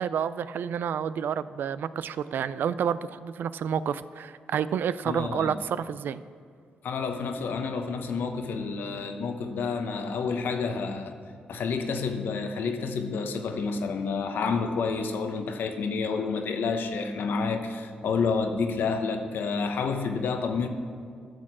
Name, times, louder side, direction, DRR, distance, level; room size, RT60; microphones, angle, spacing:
voice 1, 0.0-6.2, right 8 dB, 75° right, 15 dB, 0.4 m, -29 dB
voice 2, 5.1-5.5 6.8-11.2 11.5-20.7, left 5 dB, 75° left, 6 dB, 1.0 m, -29 dB
12.5 x 6.5 x 6.1 m, 2.2 s
supercardioid pair, 55°, 3 cm